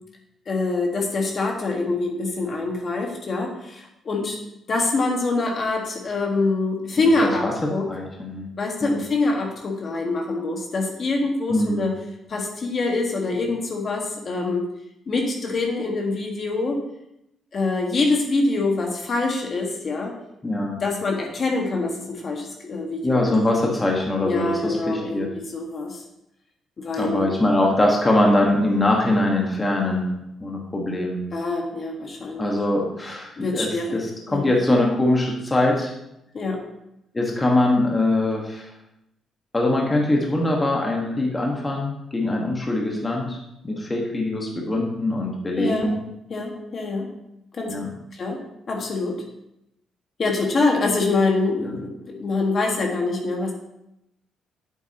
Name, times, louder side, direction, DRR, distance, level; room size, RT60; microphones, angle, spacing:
voice 1, 0.5-4.4 4.7-7.4 7.7-7.9 8.6-12.0 12.3-14.7 15.1-16.8 17.5-20.1 20.8-23.3 24.2-25.3 25.5-26.0 26.8-27.3 31.3-32.5 33.4-34.0 34.3-34.5 36.3-36.6 45.6-45.9 46.3-47.1 47.5-47.7 48.1-48.4 48.7-49.2 50.2-53.5, left 3 dB, 45° left, 0 dB, 1.6 m, -25 dB
voice 2, 7.2-7.5 7.9-8.4 8.8-8.9 11.5-11.8 20.4-20.8 23.0-25.3 27.0-30.1 30.4-31.2 32.4-35.9 37.1-38.7 39.5-43.4 43.6-46.0 47.7-47.9 51.6-51.8, left 1 dB, 20° left, -1 dB, 1.5 m, -22 dB
8.2 x 8.0 x 2.9 m, 0.83 s
cardioid pair, 90°, 0 cm